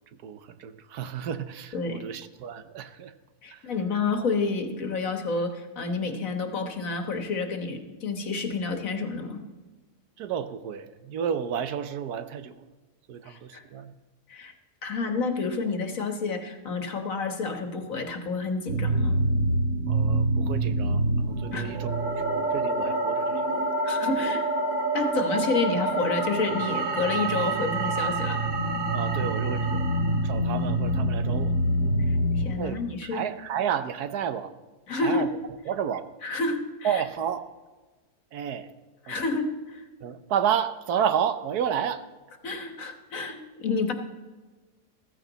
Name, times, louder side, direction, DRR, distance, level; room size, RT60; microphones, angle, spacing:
voice 1, 0.2-3.1 3.5-3.6 10.2-12.6 13.1-13.9 19.9-22.1 22.5-23.4 28.9-29.8 30.2-31.5 32.6-34.5 35.0-35.3 35.7-36.1 36.8-37.4 38.3-38.7 39.1-39.2 40.0-42.0, right 8 dB, 75° right, 11 dB, 1.3 m, -31 dB
voice 2, 1.7-2.1 3.4-9.4 13.3-13.6 14.3-14.5 14.8-19.2 21.5-21.7 23.8-24.4 24.9-28.4 32.0-33.2 34.9-35.3 36.2-37.0 39.0-39.8 42.4-43.9, left 4 dB, 55° left, 5 dB, 1.7 m, -29 dB
sound 1, 18.7-32.5, right 1 dB, 50° right, 2.1 m, -26 dB
15.0 x 14.5 x 4.0 m, 1.3 s
omnidirectional pair, 1.7 m